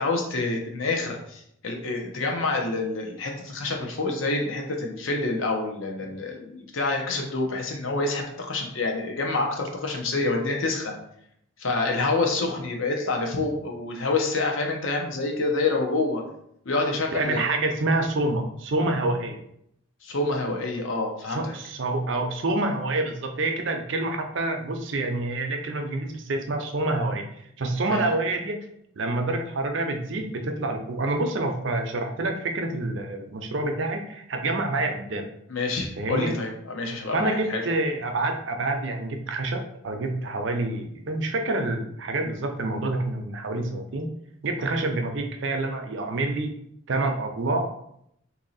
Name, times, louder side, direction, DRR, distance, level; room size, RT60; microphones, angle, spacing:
voice 1, 0.0-10.9 11.6-16.2 16.7-17.4 20.0-21.5 27.9-28.1 35.5-37.6, left 3 dB, 70° left, 1 dB, 0.7 m, -27 dB
voice 2, 17.1-19.4 21.3-28.6 29.0-35.3 36.0-36.3 37.1-44.1 44.4-46.5 46.9-47.7, right 2 dB, 60° right, 4 dB, 0.5 m, -27 dB
2.9 x 2.7 x 4.0 m, 0.73 s
head